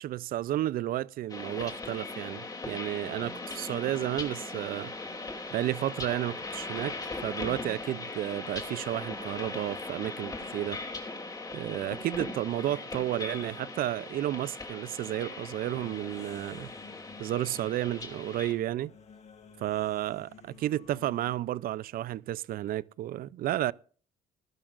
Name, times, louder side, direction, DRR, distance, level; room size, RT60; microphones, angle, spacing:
voice 1, 0.0-4.9 5.5-7.0 7.2-10.8 11.5-16.7 17.2-18.9 19.6-23.7, right 13 dB, 60° right, 0.5 m, -32 dB
sound 1, 1.3-18.5, left 3 dB, 20° left, 2.8 m, -39 dB
sound 2, 15.6-21.4, left 5 dB, 40° left, 1.6 m, -53 dB
19.0 x 12.0 x 2.5 m
cardioid pair, 110°, 17 cm